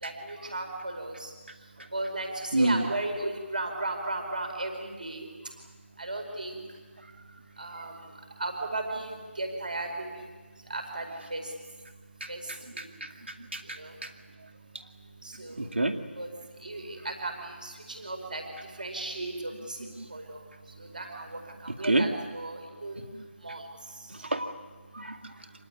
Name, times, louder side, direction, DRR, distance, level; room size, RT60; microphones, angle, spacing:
voice 1, 0.0-1.3 1.9-2.3 2.6-5.3 6.0-6.6 7.6-7.9 8.4-10.1 10.7-11.0 11.3-11.4 12.3-12.4 13.8-13.9 15.4-15.6 16.2-16.3 16.6-17.7 18.0-18.4 18.8-19.8 20.1-20.4 20.9-21.3 21.6-23.0 23.4-23.6, right 2 dB, 40° right, 4 dB, 4.9 m, -35 dB
voice 2, 2.5-2.9 12.2-12.3 13.5-14.1 15.6-16.0 20.0-20.1 21.9-22.1 24.1-24.5 24.9-25.3, right 2 dB, 55° right, 6 dB, 2.4 m, -27 dB
26.5 x 18.5 x 9.7 m, 1.4 s
figure-of-eight pair, 175°, 7 cm